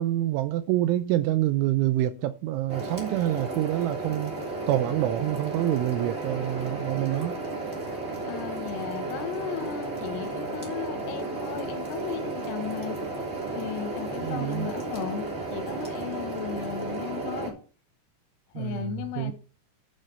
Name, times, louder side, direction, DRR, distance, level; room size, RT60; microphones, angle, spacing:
voice 1, 0.0-4.3 4.7-7.4 14.2-14.7 18.6-19.3, right 14 dB, 80° right, 2.8 m, -27 dB
sound 1, 2.7-17.5, right 2 dB, 20° right, 2.2 m, -33 dB
voice 2, 8.2-13.0 13.5-17.6 18.6-19.3, left 9 dB, 85° left, 4.1 m, -36 dB
11.5 x 5.4 x 5.5 m
omnidirectional pair, 6.0 m